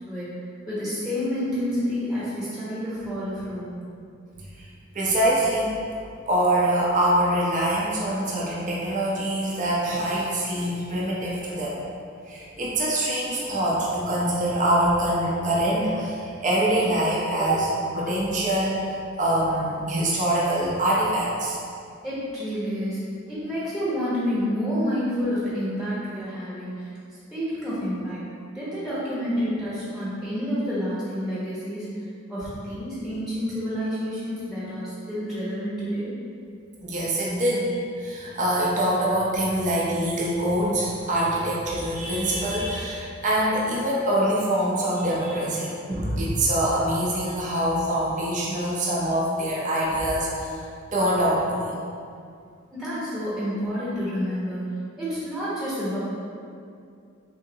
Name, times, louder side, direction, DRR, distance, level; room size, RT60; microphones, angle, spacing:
voice 1, 0.1-3.9 22.0-23.0 23.3-26.9 27.3-28.3 28.5-31.9 32.3-36.1 36.8-36.9 52.7-54.6 55.0-56.0, equal, ahead, -10 dB, 0.9 m, -29 dB
voice 2, 4.9-5.7 6.3-11.8 12.3-18.8 19.2-21.6 36.8-50.6 50.9-51.7, right 1 dB, 40° right, -5 dB, 0.5 m, -24 dB
3.7 x 2.9 x 2.7 m, 2.4 s
head